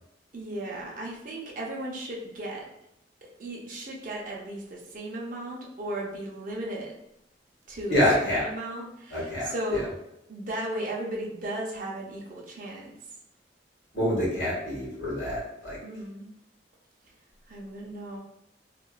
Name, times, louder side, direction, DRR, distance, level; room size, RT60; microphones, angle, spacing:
voice 1, 0.3-2.7 3.2-6.9 7.7-9.9 10.3-12.9 15.8-16.3 17.5-18.2, right 1 dB, 45° right, -3 dB, 0.6 m, -36 dB
voice 2, 7.9-8.4 9.1-9.5 13.9-15.8, left 1 dB, 75° left, -7 dB, 1.5 m, -26 dB
2.9 x 2.4 x 2.3 m, 0.82 s
head